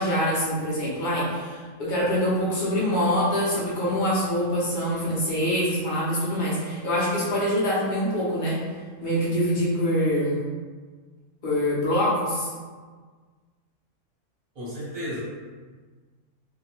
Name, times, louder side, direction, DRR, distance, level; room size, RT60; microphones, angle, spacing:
voice 1, 0.0-8.6 9.0-10.4 11.4-12.5, equal, 40° left, -8 dB, 0.8 m, -25 dB
voice 2, 14.5-15.2, equal, 40° right, -8 dB, 0.9 m, -33 dB
2.8 x 2.2 x 2.8 m, 1.5 s
omnidirectional pair, 1.6 m